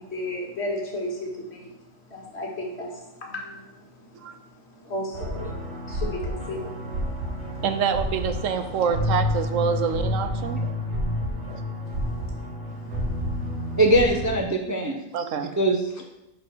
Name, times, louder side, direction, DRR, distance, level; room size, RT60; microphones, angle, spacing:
voice 1, 0.0-1.7 2.1-4.2 4.8-5.5 5.9-6.8 12.1-12.2 13.2-13.3, left 1 dB, 50° left, -1 dB, 2.0 m, -34 dB
sound 1, 5.1-14.4, left 1 dB, 55° right, 1.8 m, -29 dB
voice 2, 7.6-10.7 11.5-11.6 15.1-15.5, right 7 dB, 70° right, 9 dB, 1.0 m, -26 dB
voice 3, 13.8-15.0 15.4-16.0, right 1 dB, 20° right, 2 dB, 0.6 m, -22 dB
6.9 x 5.4 x 6.1 m, 0.91 s
omnidirectional pair, 1.4 m